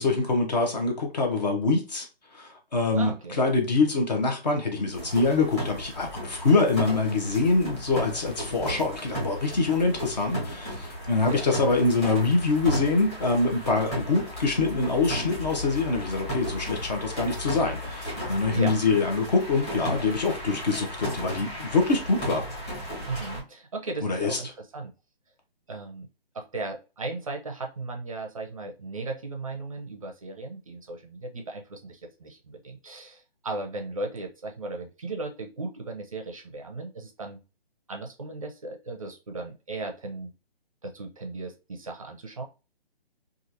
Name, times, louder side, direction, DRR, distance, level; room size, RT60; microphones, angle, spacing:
voice 1, 0.0-2.1 2.3-22.5 24.0-24.4, left 3 dB, 45° left, 0.9 m, -25 dB
voice 2, 3.0-3.4 11.3-11.4 18.5-18.7 23.1-24.9 25.7-26.1 26.3-37.4 37.9-40.3 40.8-42.4, right 3 dB, 35° right, 0.5 m, -36 dB
sound 1, 4.9-23.4, equal, 15° left, 1.1 m, -35 dB
3.0 x 2.4 x 2.6 m
hypercardioid pair, 170°, 30 cm